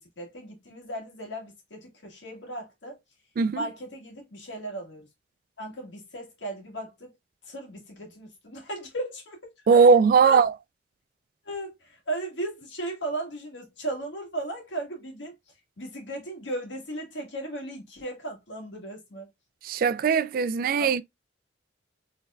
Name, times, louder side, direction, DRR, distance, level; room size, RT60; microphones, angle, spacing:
voice 1, 0.2-3.0 3.5-5.1 5.6-7.1 7.5-9.9 10.2-10.4 11.4-15.3 15.8-19.3 20.8-20.9, right 1 dB, 90° left, 1.7 m, -36 dB
voice 2, 3.4-3.7 9.7-10.5 19.6-21.0, right 5 dB, 50° right, 0.3 m, -19 dB
4.3 x 3.4 x 2.3 m
head